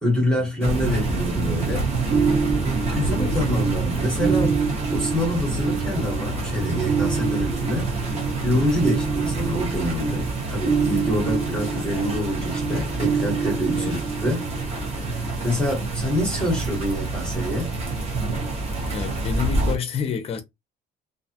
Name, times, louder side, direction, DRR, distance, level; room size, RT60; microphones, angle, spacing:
voice 1, 0.0-1.9 2.6-4.6 4.9-7.9 8.4-14.4 14.9-17.7, left 1 dB, 5° left, 1.0 m, -26 dB
sound 1, 0.6-19.8, right 3 dB, 30° right, 0.8 m, -27 dB
sound 2, 1.8-15.5 18.3-18.5, right 5 dB, 60° right, 1.3 m, -27 dB
voice 2, 2.9-3.5 8.5-8.9 13.7-14.0 18.9-20.4, left 7 dB, 30° left, 0.5 m, -30 dB
2.5 x 2.2 x 2.7 m
cardioid pair, 155°, 21 cm